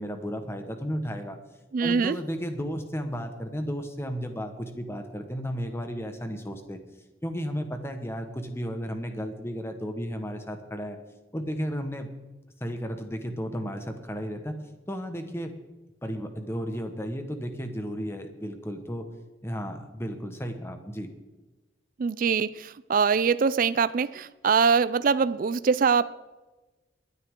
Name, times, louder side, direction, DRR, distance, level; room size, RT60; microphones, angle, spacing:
voice 1, 0.0-1.4 1.8-6.8 7.2-11.0 11.3-12.1 12.6-14.5 14.9-15.5 16.0-19.1 19.4-21.1, equal, 15° left, 1.3 m, -33 dB
voice 2, 1.7-2.2 22.0-26.1, right 5 dB, 50° right, 0.4 m, -23 dB
22.5 x 9.5 x 3.7 m
head